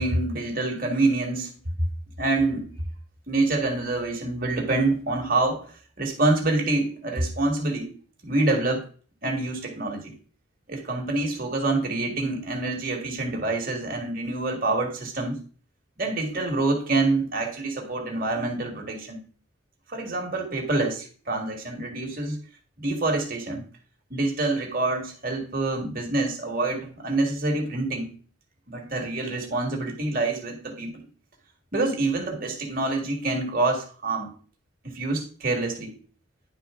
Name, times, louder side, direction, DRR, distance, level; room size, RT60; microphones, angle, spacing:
voice 1, 0.0-1.6 2.2-2.7 3.3-7.9 8.2-8.8 9.2-10.2 10.7-15.4 16.0-19.2 19.9-22.4 22.8-23.6 24.1-28.1 28.7-31.1 31.7-34.3 34.8-36.0, right 2 dB, 45° right, 0 dB, 2.1 m, -26 dB
10.5 x 4.8 x 3.8 m, 0.40 s
head